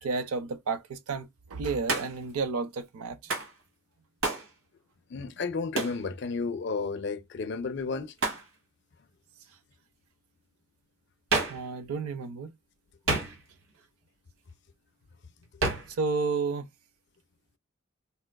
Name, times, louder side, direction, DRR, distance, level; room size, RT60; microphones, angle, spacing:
voice 1, 0.0-3.3 11.5-12.5 15.9-16.7, right 4 dB, 85° right, 0.5 m, -31 dB
Hands, 1.9-2.3 3.3-3.5 4.2-4.5 5.8-6.0 8.2-8.5 11.3-11.7 13.1-13.6 15.6-16.0, right 3 dB, 70° right, 1.1 m, -29 dB
voice 2, 5.1-8.1, left 4 dB, 50° left, 0.4 m, -32 dB
4.1 x 2.4 x 2.2 m
head